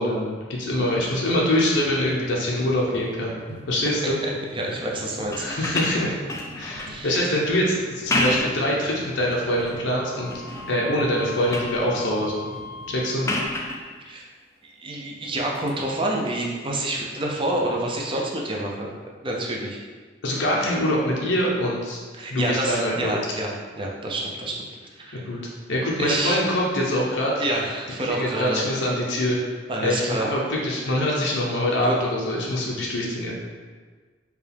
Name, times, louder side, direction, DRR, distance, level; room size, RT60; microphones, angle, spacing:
voice 1, 0.0-3.4 3.7-4.2 5.4-6.1 6.6-10.3 10.7-12.5 12.9-13.3 20.2-22.0 22.3-23.2 25.1-25.4 25.7-27.3 28.1-29.4 29.8-33.3, left 1 dB, 75° left, -3 dB, 0.6 m, -24 dB
sound 1, 0.6-13.0, right 1 dB, 80° right, 0.8 m, -44 dB
voice 2, 4.2-5.4 6.9-7.3 14.0-14.3 14.6-18.9 19.2-19.8 22.1-24.6 25.0-25.2 26.0-26.4 27.4-28.6 29.7-30.3 31.8-32.0, right 1 dB, 30° right, -1 dB, 0.6 m, -28 dB
sound 2, 5.2-7.0 7.9-8.6 9.1-9.8 10.3-10.7 11.1-11.8 13.2-13.8 15.5-15.7, left 1 dB, 15° left, 0.4 m, -29 dB
Wind instrument woodwind instrument, 10.0-13.9, left 5 dB, 55° right, 1.5 m, -40 dB
4.6 x 2.3 x 3.4 m, 1.5 s
head